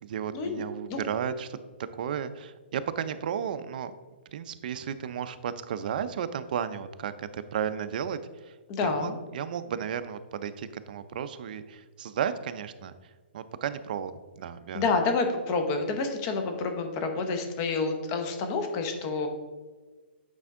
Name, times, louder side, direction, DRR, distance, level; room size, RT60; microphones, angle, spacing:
voice 1, 0.0-1.6 1.9-4.0 4.3-8.6 8.8-14.8, right 8 dB, 50° right, 11 dB, 0.4 m, -34 dB
voice 2, 8.7-9.2 14.7-19.3, left 4 dB, 25° left, 6 dB, 0.8 m, -28 dB
8.3 x 4.4 x 3.6 m, 1.3 s
hypercardioid pair, 160°, 6 cm